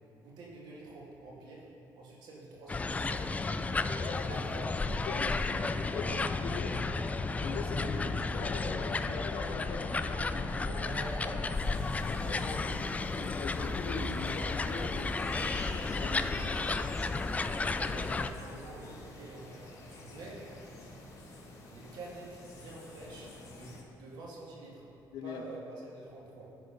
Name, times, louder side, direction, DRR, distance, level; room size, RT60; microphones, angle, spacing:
voice 1, 0.2-1.7 2.0-3.7 4.3-4.8 6.0-6.2 10.5-13.0 17.6-20.5 21.7-24.9 25.2-26.5, right 2 dB, 75° right, -4 dB, 2.3 m, -47 dB
sound 1, 2.7-18.3, left 3 dB, 20° left, 0.3 m, -33 dB
voice 2, 3.9-4.5 5.0-6.8 7.4-11.0 11.3-11.4 12.1-16.7 25.1-25.4, left 5 dB, 70° left, 4 dB, 0.9 m, -42 dB
sound 2, 11.5-23.8, left 2 dB, 45° left, 1.7 m, -49 dB
12.5 x 4.8 x 5.3 m, 2.6 s
cardioid pair, 100°, 7 cm